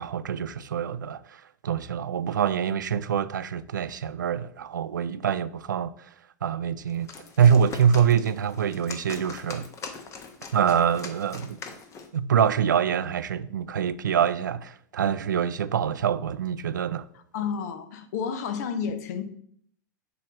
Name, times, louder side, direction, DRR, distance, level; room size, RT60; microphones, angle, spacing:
voice 1, 0.0-5.9 6.4-7.1 7.4-9.7 10.5-11.6 12.1-17.0, right 8 dB, 90° right, 0.4 m, -25 dB
sound 1, 6.9-12.2, left 5 dB, 30° left, 1.1 m, -41 dB
voice 2, 17.3-19.2, left 7 dB, 65° left, 0.9 m, -30 dB
7.7 x 3.1 x 6.1 m
hypercardioid pair, 105°, 10 cm